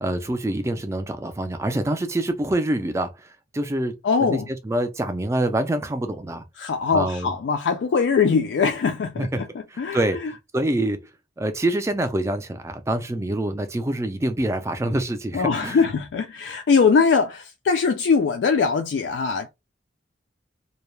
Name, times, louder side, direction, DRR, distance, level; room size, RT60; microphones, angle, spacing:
voice 1, 0.0-6.4 6.9-7.3 9.2-9.4 9.7-10.2 10.5-11.1 11.4-15.8, right 1 dB, 15° right, 0.3 m, -26 dB
voice 2, 4.0-4.5 6.6-9.5 9.8-10.0 15.3-19.5, left 5 dB, 80° left, 0.3 m, -21 dB
2.2 x 2.0 x 3.0 m
head